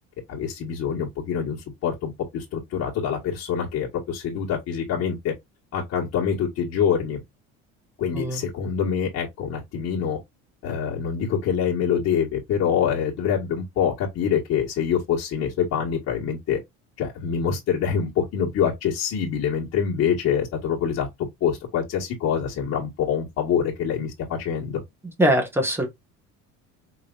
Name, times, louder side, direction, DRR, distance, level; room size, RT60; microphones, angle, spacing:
voice 1, 0.3-5.3 5.7-7.2 8.0-10.2 10.6-16.6 17.0-24.8, left 7 dB, 50° left, 1.6 m, -25 dB
voice 2, 25.2-25.9, equal, 5° right, 1.4 m, -21 dB
4.9 x 3.1 x 2.5 m
cardioid pair, 140°, 31 cm